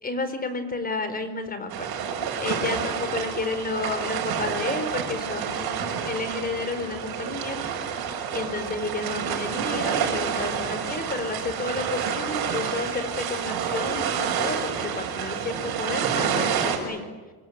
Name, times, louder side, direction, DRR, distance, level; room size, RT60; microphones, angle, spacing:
voice 1, 0.0-1.9 2.4-7.6 8.3-17.1, left 3 dB, 25° left, 9 dB, 4.3 m, -31 dB
sound 1, 1.7-16.8, right 7 dB, 70° right, 6.8 m, -29 dB
26.5 x 23.5 x 9.4 m, 1.3 s
cardioid pair, 155°, 38 cm